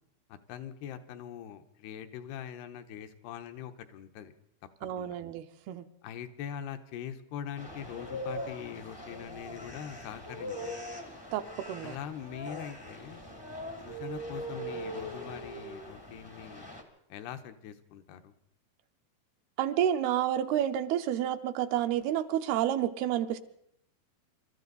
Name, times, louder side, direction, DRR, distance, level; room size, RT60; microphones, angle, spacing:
voice 1, 0.3-4.3 5.0-5.2 6.0-10.7 11.8-13.2 13.8-16.7 17.1-18.3, left 9 dB, 85° left, 9 dB, 3.0 m, -42 dB
voice 2, 4.8-5.9 11.3-12.0 19.6-23.4, right 11 dB, 80° right, 8 dB, 2.6 m, -30 dB
sound 1, 7.6-16.8, equal, 35° left, 0.3 m, -41 dB
26.5 x 13.5 x 4.0 m, 0.75 s
omnidirectional pair, 4.6 m